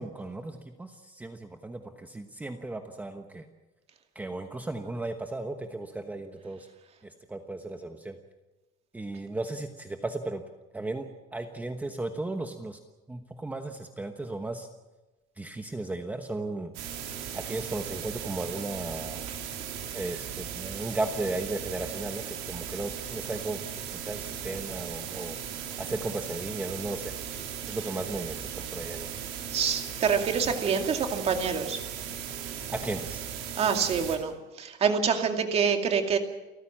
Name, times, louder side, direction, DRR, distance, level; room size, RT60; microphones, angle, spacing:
voice 1, 0.0-3.4 4.1-6.7 7.3-8.2 8.9-10.4 10.7-11.0 11.3-12.8 13.1-14.7 15.4-16.7 17.3-19.3 19.9-25.4 25.8-27.1 27.7-29.1 32.7-33.2, right 2 dB, 10° right, 5 dB, 1.1 m, -35 dB
sound 1, 16.7-34.2, right 8 dB, 75° right, 4.7 m, -37 dB
voice 2, 29.5-31.8 33.6-36.2, right 6 dB, 30° right, 5 dB, 2.5 m, -26 dB
30.0 x 15.0 x 7.4 m, 1.1 s
cardioid pair, 175°, 20 cm